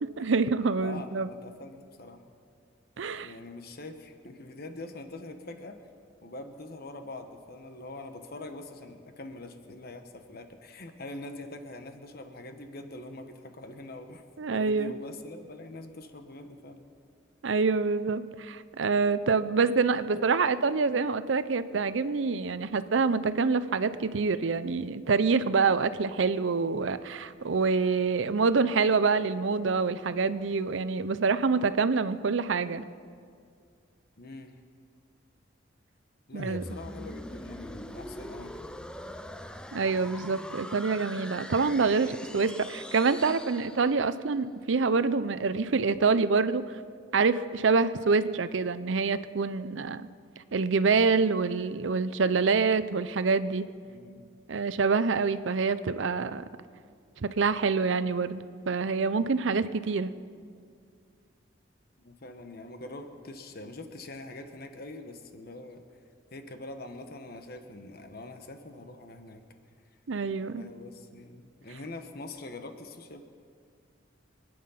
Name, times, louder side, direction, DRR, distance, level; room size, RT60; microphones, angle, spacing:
voice 1, 0.0-1.3 3.0-3.3 14.4-14.9 17.4-32.8 36.3-36.6 39.7-46.6 47.1-50.0 50.5-53.7 54.5-56.4 57.2-60.1 70.1-70.7, right 4 dB, 75° right, 13 dB, 0.6 m, -26 dB
voice 2, 0.8-2.2 3.2-5.8 6.2-14.2 14.5-16.8 34.2-34.5 36.3-38.7 53.9-54.2 62.0-65.8 66.3-69.4 70.5-73.2, left 2 dB, 50° left, 7 dB, 1.1 m, -43 dB
sound 1, 36.4-44.3, left 1 dB, 5° left, 0.5 m, -42 dB
25.5 x 9.5 x 5.7 m, 2.2 s
head